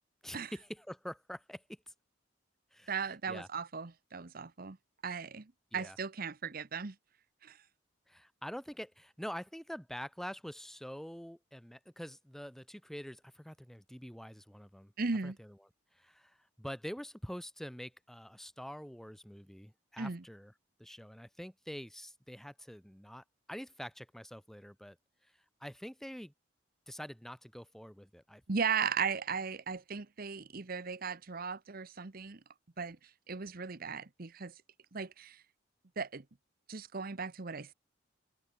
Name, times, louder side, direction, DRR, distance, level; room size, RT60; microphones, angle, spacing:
voice 1, 0.2-1.9 2.7-3.5 5.7-6.0 8.1-14.9 15.2-15.6 15.9-20.5 20.8-25.0 25.6-26.3 26.9-28.4, equal, ahead, 1.0 m, -46 dB
voice 2, 2.9-4.8 5.0-6.9 7.4-7.6 15.0-15.4 20.0-20.2 28.5-32.4 32.8-33.0 33.3-34.5 34.9-35.4 36.0-36.2 36.7-37.7, right 5 dB, 50° right, 1.0 m, -37 dB
head